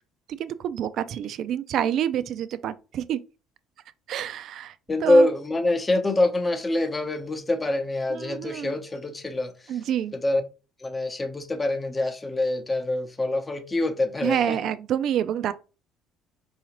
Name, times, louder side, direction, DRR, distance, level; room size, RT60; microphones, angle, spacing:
voice 1, 0.4-3.2 4.1-4.7 5.0-5.3 8.1-8.7 9.7-10.1 14.2-15.5, right 10 dB, 60° right, 0.4 m, -27 dB
voice 2, 4.9-9.8 10.1-10.4 10.8-14.6, left 1 dB, 20° left, 0.7 m, -25 dB
4.8 x 2.7 x 2.9 m
supercardioid pair, 90°, 0 cm